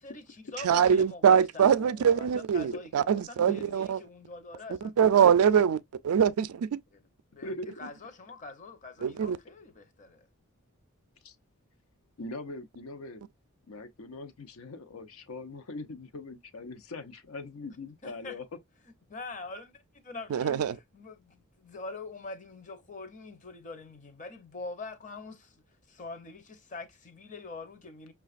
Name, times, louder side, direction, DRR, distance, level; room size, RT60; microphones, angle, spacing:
voice 1, 0.0-5.0 6.9-7.0 7.3-10.3 18.0-18.4 19.1-19.7 20.0-25.6 25.9-28.1, left 3 dB, 35° left, 0.7 m, -44 dB
voice 2, 0.6-4.0 5.0-6.8 9.0-9.4 20.3-20.8, right 8 dB, 85° right, 0.4 m, -23 dB
voice 3, 7.4-7.7 11.2-11.3 12.2-13.2 13.7-18.4, left 2 dB, 75° left, 0.6 m, -41 dB
5.7 x 2.3 x 2.4 m
head